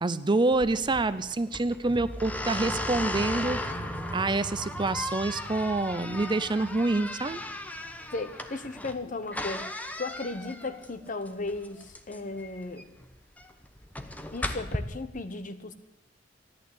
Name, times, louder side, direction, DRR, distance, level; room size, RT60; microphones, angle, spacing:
voice 1, 0.0-7.4, right 2 dB, 25° right, 14 dB, 0.5 m, -27 dB
sound 1, 0.5-14.8, left 1 dB, 10° left, 1.0 m, -37 dB
sound 2, 1.8-7.9, right 1 dB, 55° right, 1.2 m, -42 dB
sound 3, 4.5-8.5, equal, 75° left, 6.2 m, -58 dB
voice 2, 8.1-12.8 14.3-15.7, left 3 dB, 45° left, 10 dB, 1.2 m, -36 dB
14.0 x 11.5 x 8.4 m, 0.96 s
head